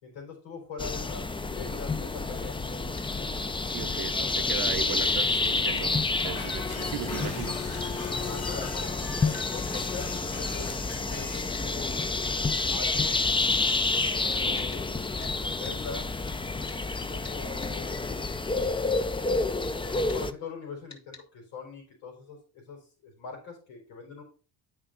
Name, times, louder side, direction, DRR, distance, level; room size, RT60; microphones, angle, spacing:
voice 1, 0.0-2.6 3.1-3.3 8.3-10.7 11.0-13.2 13.9-16.1 17.1-18.1 19.9-24.2, left 5 dB, 80° left, 4.3 m, -42 dB
sound 1, 0.8-20.3, left 3 dB, 10° left, 0.5 m, -29 dB
sound 2, 3.0-3.1 5.0-5.1 5.4-5.9 6.8-6.9 7.7-7.9 9.3-9.6 11.5-11.7 13.7-14.8 15.2-15.4 15.6-15.8 16.7-16.8 17.2-17.7 20.1-20.2 20.9-21.3, left 4 dB, 40° left, 2.3 m, -47 dB
voice 2, 3.7-7.7, right 14 dB, 55° right, 0.7 m, -37 dB
sound 3, 6.4-11.6, left 4 dB, 55° left, 2.4 m, -42 dB
8.7 x 5.1 x 3.9 m
supercardioid pair, 75°, 43 cm